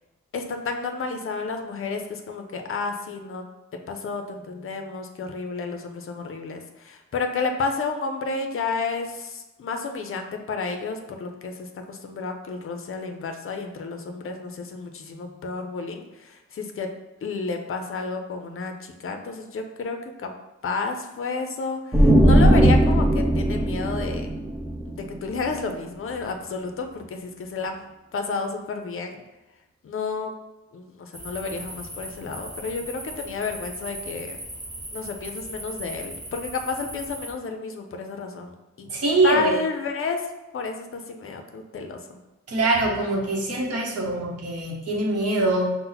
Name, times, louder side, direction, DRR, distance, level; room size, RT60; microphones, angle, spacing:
voice 1, 0.3-3.4 3.9-16.9 17.2-20.3 20.6-24.3 24.9-29.2 29.8-30.3 30.7-34.4 34.9-38.5 38.8-38.9 39.2-40.2 40.5-42.0, left 4 dB, 45° left, 5 dB, 0.5 m, -31 dB
sound 1, 21.9-25.5, right 1 dB, 5° right, 0.5 m, -18 dB
sound 2, 31.1-37.3, right 1 dB, 25° right, 1.1 m, -38 dB
voice 2, 38.9-39.5 42.5-45.7, right 2 dB, 55° right, -3 dB, 1.0 m, -23 dB
5.5 x 2.1 x 3.9 m, 1.1 s
wide cardioid pair, 165°, 29 cm